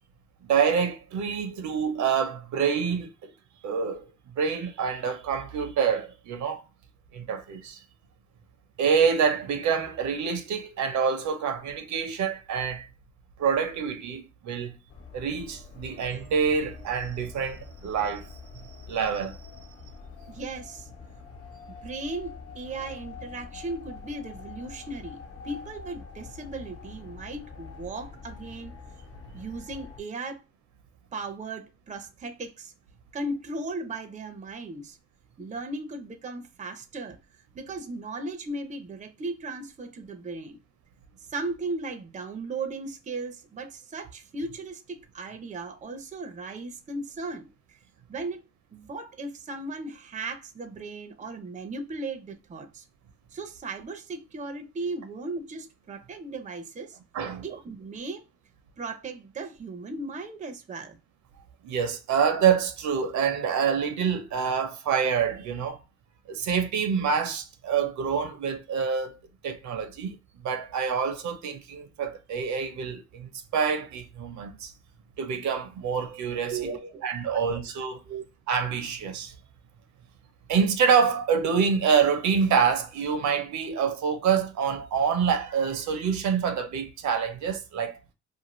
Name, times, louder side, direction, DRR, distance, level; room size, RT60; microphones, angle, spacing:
voice 1, 0.5-3.3 3.6-4.1 4.4-6.6 7.1-7.8 8.8-12.9 13.4-14.8 15.1-18.4 18.9-19.4 57.1-57.5 61.6-65.8 66.3-69.2 69.4-70.2 70.4-74.7 75.2-76.6 77.0-78.0 78.5-79.3 80.5-88.0, right 6 dB, 70° right, 0.6 m, -26 dB
sound 1, 14.9-30.0, left 5 dB, 50° left, 1.0 m, -45 dB
voice 2, 20.3-20.9 21.8-25.2 25.4-28.7 29.3-30.4 31.1-32.7 33.1-35.0 35.4-37.2 37.5-40.6 41.2-47.5 48.1-48.4 48.7-52.8 53.3-57.0 57.4-58.3 58.8-61.0 76.4-77.1 77.3-77.4 78.1-78.2, right 3 dB, 25° right, 0.5 m, -36 dB
2.5 x 2.4 x 2.9 m
cardioid pair, 90°, 30 cm